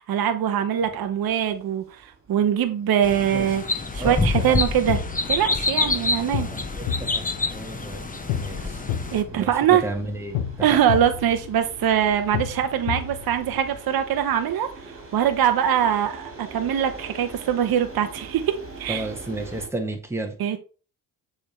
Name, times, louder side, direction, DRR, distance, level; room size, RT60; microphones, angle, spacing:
voice 1, 0.0-2.0 2.3-3.6 3.9-5.0 5.3-6.5 9.1-9.8 10.6-14.7 15.1-19.1 20.4-20.6, right 9 dB, 50° right, 0.9 m, -22 dB
sound 1, 0.8-19.7, right 3 dB, 30° right, 2.7 m, -45 dB
sound 2, 3.0-9.2, left 3 dB, 15° left, 1.1 m, -27 dB
sound 3, 3.8-13.8, left 9 dB, 80° left, 0.9 m, -32 dB
voice 2, 6.5-7.2 7.5-8.0 8.3-8.8 9.3-10.4 18.9-20.3, right 2 dB, 5° right, 1.6 m, -32 dB
6.7 x 3.6 x 4.4 m
supercardioid pair, 60°, 46 cm